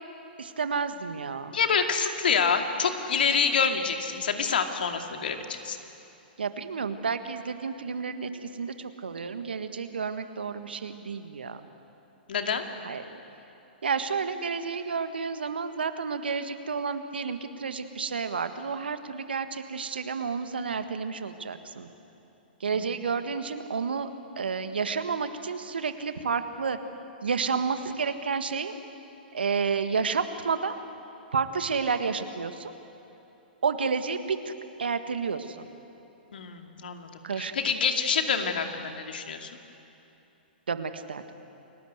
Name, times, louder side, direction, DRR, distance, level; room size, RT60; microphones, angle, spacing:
voice 1, 0.4-1.5 6.4-11.6 12.9-13.0 13.8-21.9 22.6-24.1 24.4-26.8 27.2-28.7 29.3-30.8 31.3-32.7 33.6-34.5 34.8-35.7 37.2-37.5 40.7-41.2, right 5 dB, 80° right, 9 dB, 1.6 m, -30 dB
voice 2, 1.5-5.8 12.3-12.6 22.7-22.9 36.3-39.5, left 6 dB, 70° left, 5 dB, 2.4 m, -27 dB
29.5 x 19.5 x 8.1 m, 2.9 s
hypercardioid pair, 115°, 5 cm